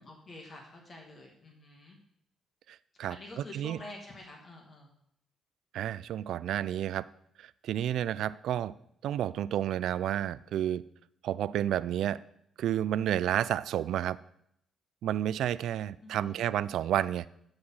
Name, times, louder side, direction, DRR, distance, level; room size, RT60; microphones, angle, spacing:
voice 1, 0.0-2.0 3.1-4.9 16.0-16.5, left 2 dB, 40° left, 0 dB, 2.0 m, -48 dB
voice 2, 2.7-3.2 3.5-3.8 5.7-7.1 7.4-8.7 9.0-10.8 11.2-12.2 12.6-14.2 15.0-17.3, right 11 dB, 75° right, 18 dB, 0.3 m, -30 dB
13.0 x 4.9 x 5.6 m, 0.71 s
cardioid pair, 90°, 0 cm